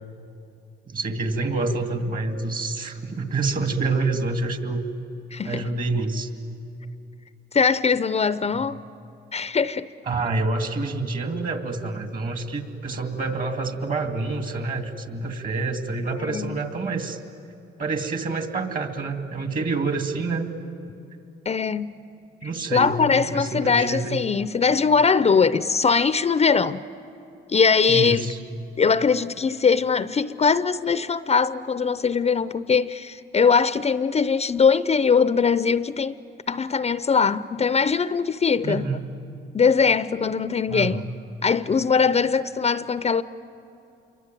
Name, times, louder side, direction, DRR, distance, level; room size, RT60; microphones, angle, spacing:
voice 1, 0.9-4.8 5.4-6.3 8.5-8.6 10.1-17.2 17.8-20.5 22.4-24.2 27.9-28.4 38.6-39.1 40.7-41.0, right 3 dB, 45° right, 2.5 m, -27 dB
voice 2, 5.3-5.6 7.5-8.8 9.3-9.9 16.2-16.6 21.5-21.9 22.7-26.8 27.5-28.3 28.8-36.1 36.5-38.9 39.5-41.0 41.4-43.2, left 5 dB, 30° left, 0.6 m, -21 dB
27.5 x 23.5 x 9.2 m
cardioid pair, 90°, 20 cm